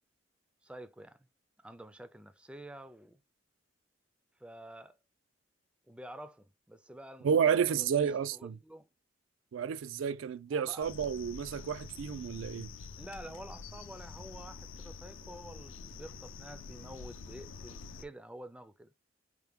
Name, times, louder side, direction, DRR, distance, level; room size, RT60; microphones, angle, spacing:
voice 1, 0.6-1.3 1.6-3.2 4.4-5.0 5.9-8.9 10.5-10.9 13.0-18.9, right 1 dB, 5° right, 0.3 m, -49 dB
voice 2, 7.2-8.5 9.5-12.7, right 7 dB, 85° right, 0.4 m, -31 dB
sound 1, 10.8-18.0, left 4 dB, 85° left, 0.5 m, -47 dB
4.5 x 2.1 x 3.4 m
head